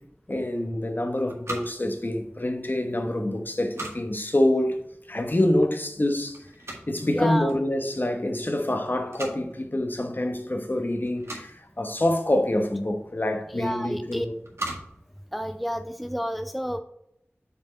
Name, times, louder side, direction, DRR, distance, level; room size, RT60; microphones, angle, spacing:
voice 1, 0.3-4.8 5.1-6.5 6.9-14.3, left 1 dB, 45° left, 1.2 m, -26 dB
sound 1, 0.9-16.1, right 1 dB, 70° right, 1.7 m, -43 dB
voice 2, 7.1-7.5 13.5-14.3 15.3-16.8, equal, ahead, 0.4 m, -30 dB
7.0 x 4.6 x 4.1 m
wide cardioid pair, 45°, 5 cm